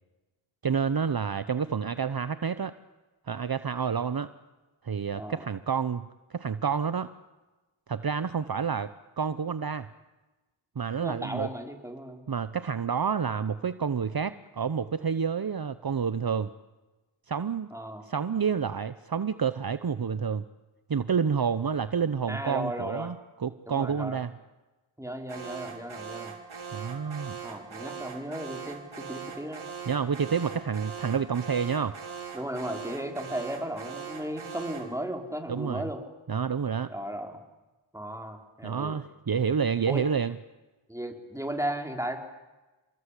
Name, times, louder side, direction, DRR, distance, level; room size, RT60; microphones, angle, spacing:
voice 1, 0.6-2.7 3.3-4.3 4.8-7.1 7.9-8.9 9.2-9.9 10.8-11.5 12.3-16.5 17.3-17.7 18.0-20.4 20.9-24.3 26.7-27.4 29.9-32.0 35.5-35.8 36.3-36.9 38.6-40.4, right 6 dB, 50° right, 13 dB, 0.9 m, -29 dB
voice 2, 5.1-5.5 11.0-12.2 17.7-18.0 22.3-23.1 23.7-24.2 25.0-26.3 27.4-29.6 32.3-36.0 36.9-37.4 37.9-39.0 39.9-40.1 40.9-42.2, right 1 dB, 5° right, 4 dB, 4.2 m, -35 dB
Alarm, 25.3-35.0, right 6 dB, 90° right, 4.2 m, -41 dB
29.5 x 21.5 x 8.4 m, 1.1 s
wide cardioid pair, 55°, 48 cm